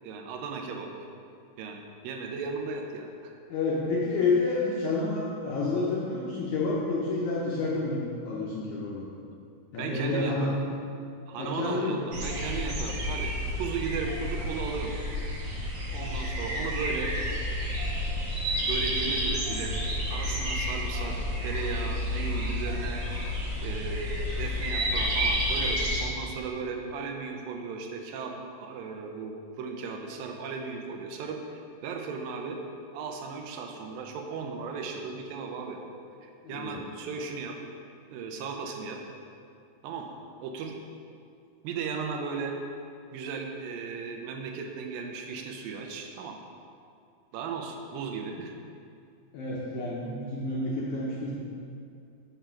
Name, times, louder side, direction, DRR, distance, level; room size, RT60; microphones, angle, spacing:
voice 1, 0.0-0.9 1.6-3.3 9.8-10.5 11.3-13.3 13.6-14.9 15.9-17.1 18.5-19.8 20.1-21.2 21.4-23.0 23.6-28.3 28.6-32.6 32.9-35.8 36.2-37.6 38.1-39.0 39.8-40.1 40.4-40.8 41.6-42.5 43.1-46.4 47.3-48.5, right 5 dB, 80° right, 2 dB, 2.3 m, -36 dB
voice 2, 3.5-9.1 9.7-10.6 11.4-12.0 36.4-36.8 49.3-51.3, left 3 dB, 75° left, -5 dB, 1.7 m, -29 dB
sound 1, 12.1-26.0, equal, 60° right, 1.7 m, -30 dB
6.9 x 4.5 x 5.7 m, 2.4 s
omnidirectional pair, 4.3 m